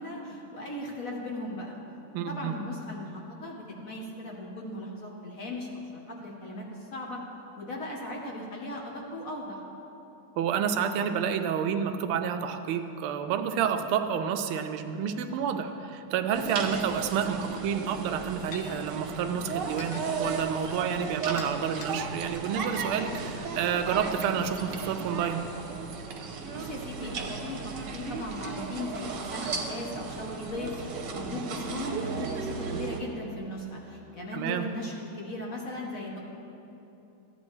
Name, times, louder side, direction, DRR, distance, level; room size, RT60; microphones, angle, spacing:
voice 1, 0.0-1.8 2.3-7.2 7.5-9.6 26.5-36.2, left 1 dB, 50° left, -2 dB, 1.2 m, -38 dB
voice 2, 2.1-2.6 10.4-25.4 34.3-34.7, right 7 dB, 90° right, 7 dB, 1.5 m, -29 dB
sound 1, 16.3-33.0, right 5 dB, 65° right, 1.3 m, -35 dB
sound 2, 17.6-17.7 18.5-18.6 19.8-20.3 21.2-21.9 22.8-22.9, left 7 dB, 70° left, 1.4 m, -43 dB
14.0 x 9.6 x 3.1 m, 2.9 s
omnidirectional pair, 2.3 m